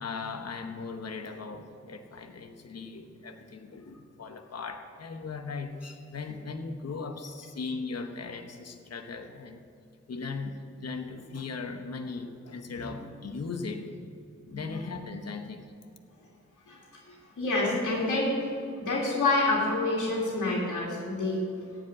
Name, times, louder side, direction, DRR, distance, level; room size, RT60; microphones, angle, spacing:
voice 1, 0.0-9.6 10.1-13.9 14.5-15.6, left 4 dB, 60° left, 6 dB, 1.0 m, -38 dB
voice 2, 17.1-18.3 18.8-21.4, left 2 dB, 90° left, -5 dB, 2.6 m, -28 dB
15.5 x 5.2 x 8.9 m, 2.5 s
wide cardioid pair, 115°, 30 cm